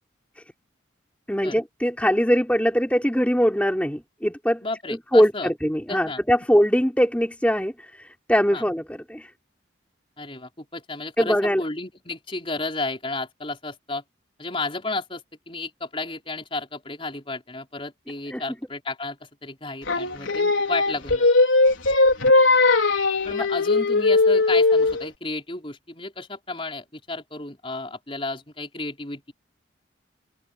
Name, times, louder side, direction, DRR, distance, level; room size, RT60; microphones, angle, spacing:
voice 1, 1.3-4.6 4.9-9.3 11.2-11.6 18.3-18.4, equal, 5° left, 3.5 m, -22 dB
voice 2, 4.6-5.5 5.9-6.2 8.5-8.6 10.2-14.0 14.4-21.3 23.3-29.3, left 3 dB, 25° left, 4.6 m, -33 dB
Singing, 19.9-25.1, left 3 dB, 80° left, 4.4 m, -19 dB
head